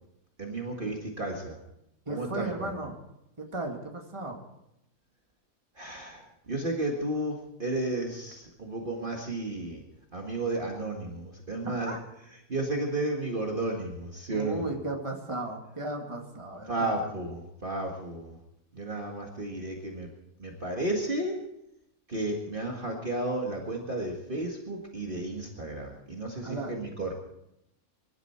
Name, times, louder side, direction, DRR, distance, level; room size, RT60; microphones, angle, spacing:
voice 1, 0.4-1.6 2.1-2.7 5.8-9.8 10.1-12.0 12.5-14.7 16.7-18.4 18.7-20.1 20.4-21.4 22.1-27.1, right 2 dB, 35° right, 0 dB, 2.0 m, -33 dB
voice 2, 2.1-2.9 3.4-4.4 11.7-12.0 14.3-16.9 26.4-26.7, right 2 dB, 20° right, 1 dB, 2.3 m, -35 dB
24.0 x 12.0 x 4.5 m, 0.83 s
omnidirectional pair, 1.5 m